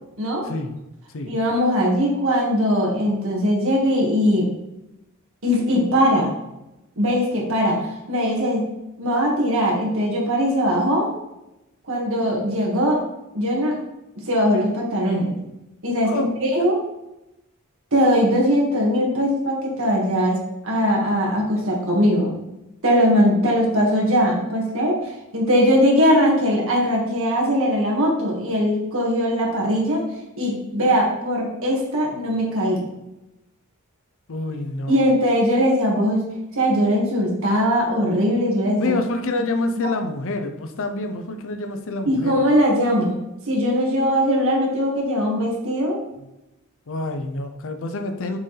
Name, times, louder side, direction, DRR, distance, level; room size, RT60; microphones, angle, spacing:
voice 1, 0.4-0.8 1.1-1.4 16.0-16.3 34.3-35.1 38.8-42.4 46.9-48.4, left 2 dB, 65° left, 7 dB, 0.6 m, -27 dB
voice 2, 1.3-4.5 5.4-6.3 7.0-8.6 9.0-11.1 11.9-13.0 13.3-13.7 14.3-15.3 15.8-16.8 17.9-20.4 20.6-22.3 22.8-25.0 25.3-30.1 30.4-32.8 34.9-36.2 36.5-38.9 42.0-43.2 43.5-46.0, equal, 65° right, -2 dB, 1.8 m, -20 dB
7.1 x 4.6 x 3.3 m, 0.93 s
head